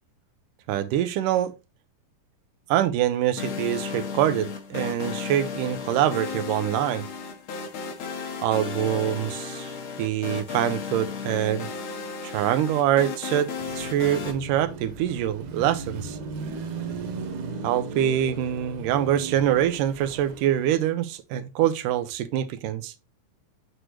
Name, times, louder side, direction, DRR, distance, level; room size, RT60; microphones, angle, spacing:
voice 1, 0.7-1.5 2.7-7.0 8.4-11.7 12.2-13.5 13.8-16.2 17.6-22.9, right 11 dB, 85° right, 2.3 m, -25 dB
Massive Synth, 3.4-14.3, left 6 dB, 55° left, 1.7 m, -34 dB
Car passing by / Traffic noise roadway noise / Engine, 13.6-20.9, right 4 dB, 70° right, 2.7 m, -37 dB
8.2 x 6.3 x 3.0 m
omnidirectional pair, 3.8 m